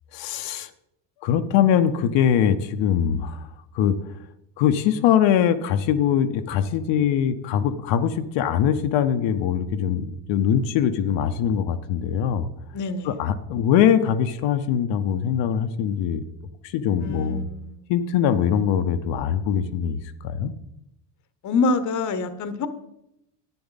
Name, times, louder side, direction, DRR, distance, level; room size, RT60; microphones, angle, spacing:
voice 1, 0.1-0.7 1.2-3.5 3.7-4.0 4.6-12.5 13.0-16.2 16.6-17.4 17.9-20.5, left 9 dB, 65° left, 9 dB, 0.8 m, -22 dB
voice 2, 12.7-13.1 17.0-17.8 21.4-22.7, left 3 dB, 40° left, 12 dB, 0.9 m, -26 dB
10.5 x 8.5 x 4.0 m, 0.82 s
supercardioid pair, 95°, 48 cm